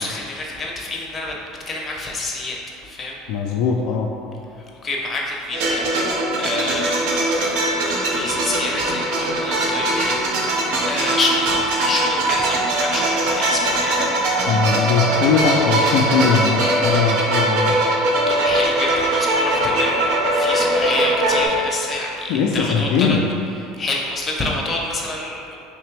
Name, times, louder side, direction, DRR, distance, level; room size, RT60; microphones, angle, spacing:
voice 1, 0.0-1.3 1.7-3.2 4.6-10.2 10.8-14.1 18.3-23.2 23.5-25.6, left 2 dB, 25° left, -2 dB, 0.6 m, -28 dB
voice 2, 3.3-4.1 14.5-17.8 22.3-23.2, left 5 dB, 70° left, 0 dB, 0.3 m, -20 dB
sound 1, 5.5-21.5, right 1 dB, 70° right, 0.6 m, -21 dB
3.2 x 2.9 x 3.3 m, 2.6 s
supercardioid pair, 105°, 0 cm